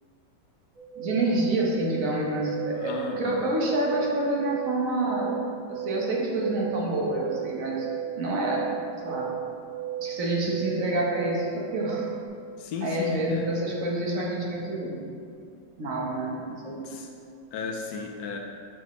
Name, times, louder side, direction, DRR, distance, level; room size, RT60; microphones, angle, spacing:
sound 1, 0.8-12.3, right 11 dB, 85° right, 2.0 m, -35 dB
voice 1, 1.0-5.4 5.7-7.9 8.2-8.6 9.0-9.3 10.0-12.1 12.8-15.0 15.8-16.8, right 1 dB, 50° right, -3 dB, 1.2 m, -28 dB
voice 2, 2.7-3.5 12.6-13.5 16.8-17.1 17.5-18.4, left 5 dB, 75° left, 1 dB, 0.9 m, -34 dB
7.6 x 5.0 x 3.1 m, 2.4 s
omnidirectional pair, 2.1 m